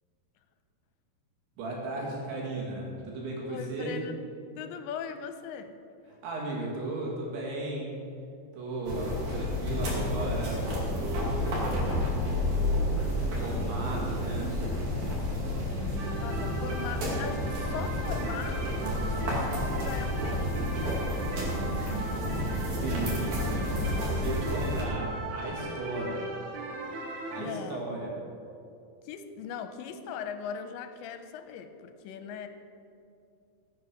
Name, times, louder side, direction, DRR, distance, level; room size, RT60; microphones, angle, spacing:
voice 1, 1.6-4.0 6.2-8.0 8.5-10.7 11.0-11.8 12.2-14.5 15.7-16.4 22.7-23.8 24.1-26.3 27.3-28.1, right 2 dB, 80° right, -3 dB, 4.9 m, -36 dB
voice 2, 3.5-4.2 4.6-5.8 16.2-18.7 19.0-21.1 21.5-22.3 27.4-27.8 29.0-32.5, left 7 dB, 85° left, 8 dB, 3.0 m, -40 dB
sound 1, 8.8-24.8, left 1 dB, 45° right, 3.2 m, -30 dB
sound 2, 16.0-27.4, right 2 dB, 65° right, 2.0 m, -38 dB
15.5 x 8.4 x 6.2 m, 2.5 s
omnidirectional pair, 5.2 m